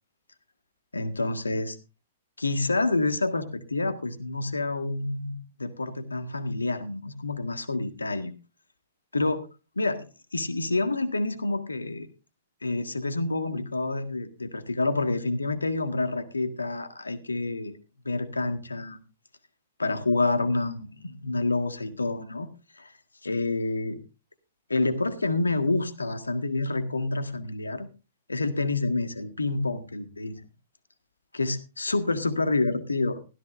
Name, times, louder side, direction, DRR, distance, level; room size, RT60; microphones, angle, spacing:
voice 1, 0.9-1.8 2.4-8.3 9.1-9.5 9.7-10.0 10.3-12.1 12.6-17.7 18.0-19.0 19.8-22.5 22.8-22.9 23.2-24.0 24.7-27.9 28.3-30.4 31.3-33.2, left 2 dB, 85° left, 8 dB, 1.7 m, -28 dB
16.5 x 13.5 x 2.6 m, 0.31 s
figure-of-eight pair, 105°, 0 cm